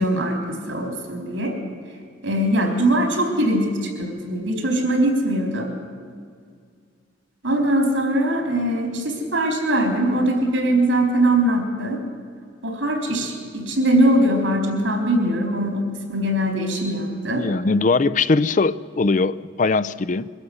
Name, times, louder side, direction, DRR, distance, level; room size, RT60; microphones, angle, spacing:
voice 1, 0.0-1.5 2.2-5.7 7.4-12.0 12.6-17.4, right 1 dB, 80° right, 4 dB, 4.3 m, -21 dB
voice 2, 17.4-20.3, left 3 dB, 40° left, 16 dB, 0.5 m, -20 dB
23.0 x 12.5 x 9.6 m, 2.1 s
head